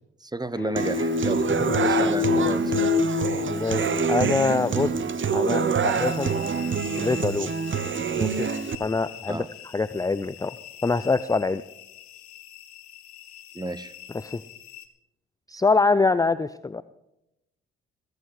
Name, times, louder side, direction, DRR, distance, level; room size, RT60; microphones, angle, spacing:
voice 1, 0.2-1.5 1.8-2.9 9.3-9.5 13.5-13.9, right 2 dB, 15° right, 17 dB, 1.0 m, -32 dB
sound 1, 0.5-5.1, left 7 dB, 40° left, 1.5 m, -27 dB
Human voice / Acoustic guitar, 0.8-8.7, right 6 dB, 40° right, 1.2 m, -26 dB
voice 2, 3.5-4.9 5.3-6.3 7.0-7.5 8.2-8.5 8.8-9.4 9.7-10.5 10.8-11.6 14.2-14.4 15.5-16.8, left 4 dB, 10° left, 15 dB, 0.5 m, -24 dB
sound 2, 5.9-14.9, left 13 dB, 85° left, 1.0 m, -44 dB
21.5 x 8.3 x 4.9 m, 0.87 s
hypercardioid pair, 45°, 30 cm